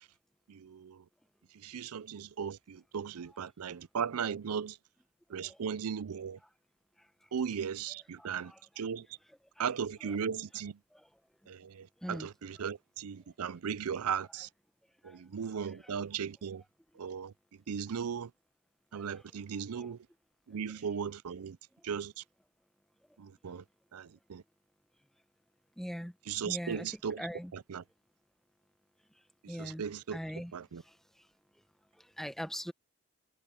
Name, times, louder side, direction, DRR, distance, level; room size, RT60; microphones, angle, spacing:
voice 1, 0.5-1.0 1.6-4.8 5.3-6.4 7.3-8.5 8.8-9.1 9.6-10.8 11.5-14.5 15.0-16.6 17.0-17.3 17.7-18.3 18.9-20.0 20.5-21.6 21.8-22.2 23.2-23.6 23.9-24.4 26.3-27.3 27.5-27.8 29.4-30.2 30.5-30.8, right 7 dB, 90° right, 0.5 m, -37 dB
voice 2, 8.2-8.6 9.6-9.7 10.0-10.1 10.9-11.1 12.0-12.3 15.0-15.2 15.8-15.9 19.1-19.2 19.8-19.9 25.8-26.1 26.4-26.9 27.2-27.5 29.5-29.8 30.1-30.5 32.2-32.7, equal, ahead, 1.0 m, -41 dB
head